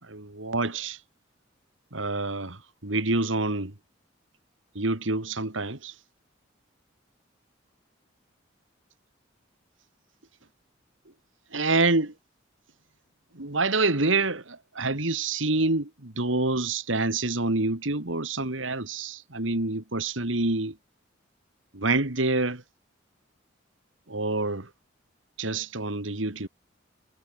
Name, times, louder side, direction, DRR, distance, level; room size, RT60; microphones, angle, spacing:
voice 1, 0.0-1.0 1.9-3.7 4.7-5.9 11.5-12.1 13.3-20.8 21.7-22.6 24.1-24.7 25.4-26.5, right 3 dB, 85° right, 2.7 m, -27 dB
head